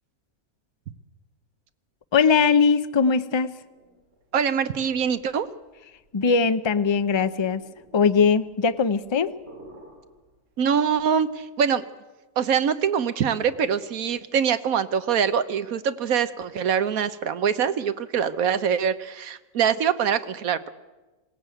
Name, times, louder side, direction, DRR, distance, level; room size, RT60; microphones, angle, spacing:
voice 1, 2.1-3.5 6.1-7.6 7.9-9.3, left 5 dB, 35° left, 12 dB, 0.4 m, -20 dB
sonido tripas, 3.5-11.4, right 1 dB, 45° right, 5.8 m, -52 dB
voice 2, 4.3-5.5 10.6-11.9 12.4-20.7, right 7 dB, 70° right, 13 dB, 1.3 m, -24 dB
21.0 x 17.0 x 9.1 m, 1.2 s
omnidirectional pair, 1.6 m